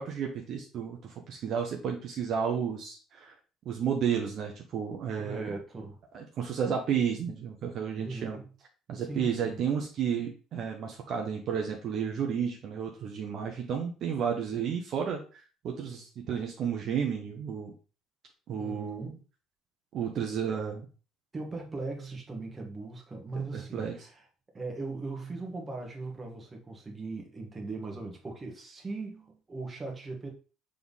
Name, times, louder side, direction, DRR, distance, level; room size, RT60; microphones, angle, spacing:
voice 1, 0.0-3.3 3.7-5.5 6.1-8.4 8.9-17.7 18.5-19.2 19.9-20.8 23.3-23.9, right 7 dB, 40° right, 0.9 m, -32 dB
voice 2, 5.1-6.0 8.0-8.5 8.9-9.6 18.6-19.2 21.3-24.2 24.5-30.3, right 3 dB, 15° right, 1.5 m, -39 dB
6.8 x 3.6 x 4.1 m
cardioid pair, 165°, 0 cm